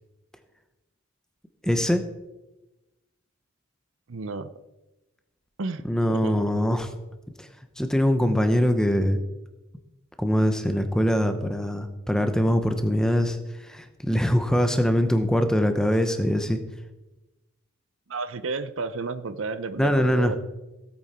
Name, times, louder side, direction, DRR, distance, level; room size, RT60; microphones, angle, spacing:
voice 1, 1.6-2.0 5.8-6.9 7.4-7.5 7.8-9.2 10.2-16.6 19.8-20.3, equal, 5° left, 7 dB, 0.9 m, -23 dB
voice 2, 4.1-4.6 5.6-6.4 18.1-20.4, right 3 dB, 70° right, 12 dB, 0.7 m, -32 dB
16.5 x 8.8 x 4.4 m, 1.0 s
head